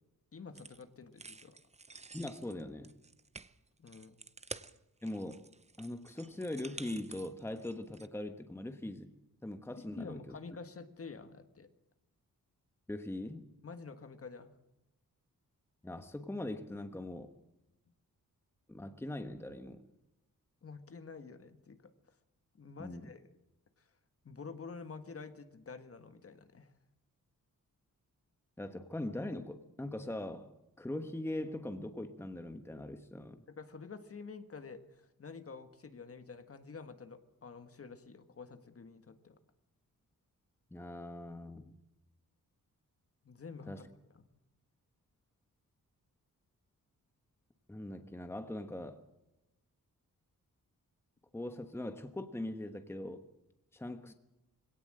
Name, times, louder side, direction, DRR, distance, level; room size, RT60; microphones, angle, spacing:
voice 1, 0.3-1.6 3.8-4.2 9.8-11.7 13.6-14.5 20.6-21.9 22.5-23.3 24.2-26.7 33.5-39.4 43.2-43.9 44.1-44.3, left 4 dB, 40° left, 1.6 m, -49 dB
sound 1, 0.5-0.8 1.2-8.1, right 4 dB, 20° right, 0.7 m, -50 dB
voice 2, 2.1-2.9 5.0-5.4 5.8-9.1 9.4-10.4 12.9-13.4 15.8-17.3 18.7-19.8 22.8-23.1 28.6-33.4 40.7-41.7 43.7-43.8 47.7-49.0 51.3-53.2 53.7-54.1, left 1 dB, 5° left, 1.2 m, -41 dB
23.5 x 17.5 x 7.7 m
wide cardioid pair, 170°, 33 cm